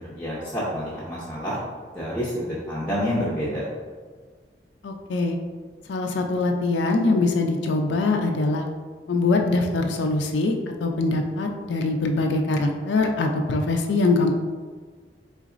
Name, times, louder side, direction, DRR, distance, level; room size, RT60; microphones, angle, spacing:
voice 1, 0.0-1.6 1.9-3.6, equal, 10° left, -9 dB, 0.7 m, -28 dB
voice 2, 4.8-5.4 5.9-8.6 9.1-10.6 10.8-14.3, left 3 dB, 85° left, 3 dB, 0.4 m, -23 dB
4.0 x 3.9 x 2.5 m, 1.5 s
head